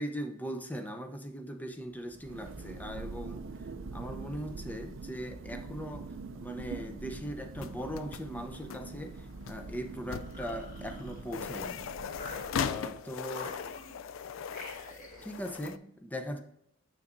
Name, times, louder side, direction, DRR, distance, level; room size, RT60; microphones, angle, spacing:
voice 1, 0.0-3.4 3.9-6.1 6.3-11.8 12.6-13.6 15.2-16.4, equal, 10° left, 6 dB, 0.6 m, -39 dB
Thunder, 1.9-12.9, right 3 dB, 75° right, 0.5 m, -44 dB
sound 1, 7.6-15.8, left 7 dB, 80° left, 0.3 m, -39 dB
sound 2, 10.1-11.7 12.1-12.9 13.3-14.1 14.5-15.4, left 1 dB, 40° left, 1.4 m, -48 dB
7.3 x 6.5 x 2.5 m, 0.74 s
head